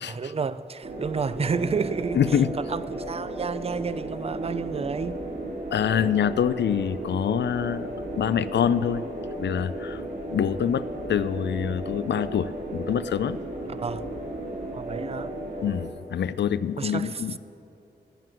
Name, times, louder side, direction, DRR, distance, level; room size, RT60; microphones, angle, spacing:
voice 1, 0.0-2.2 2.6-5.2 13.7-14.0 14.7-15.3 16.8-17.2, right 5 dB, 35° right, 0.4 m, -30 dB
sound 1, 0.8-15.9, right 1 dB, 60° right, 2.1 m, -35 dB
voice 2, 2.1-2.5 5.7-7.9 8.2-9.0 9.4-10.0 10.3-13.4 15.6-17.4, left 8 dB, 80° left, 0.4 m, -25 dB
18.5 x 7.6 x 7.6 m
wide cardioid pair, 160°, 18 cm